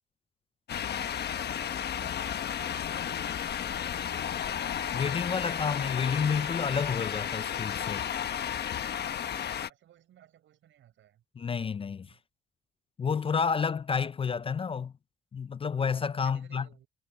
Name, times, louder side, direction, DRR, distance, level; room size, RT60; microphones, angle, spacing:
sound 1, 0.7-9.7, left 9 dB, 55° left, 1.2 m, -33 dB
voice 1, 1.5-4.5 9.7-11.2 11.8-12.2 16.2-16.9, right 11 dB, 75° right, 6.5 m, -59 dB
voice 2, 4.9-8.1 11.4-12.1 13.0-14.9 15.3-16.7, left 6 dB, 30° left, 0.4 m, -30 dB
cardioid pair, 90°, 20 cm